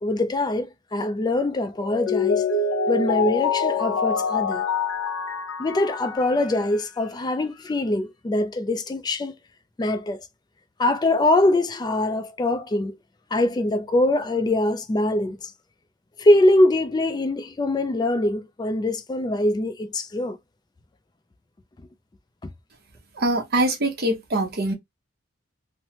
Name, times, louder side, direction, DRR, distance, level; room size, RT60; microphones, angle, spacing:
voice 1, 0.0-2.5 2.9-4.6 5.6-9.4 9.8-10.2 10.8-13.0 13.3-15.5 16.2-20.4 22.4-22.5, left 1 dB, 20° left, 0.3 m, -23 dB
Mallet percussion, 1.8-6.8, left 5 dB, 75° left, 0.7 m, -25 dB
voice 2, 23.2-24.7, right 1 dB, 50° right, 0.9 m, -23 dB
3.1 x 2.1 x 2.9 m
head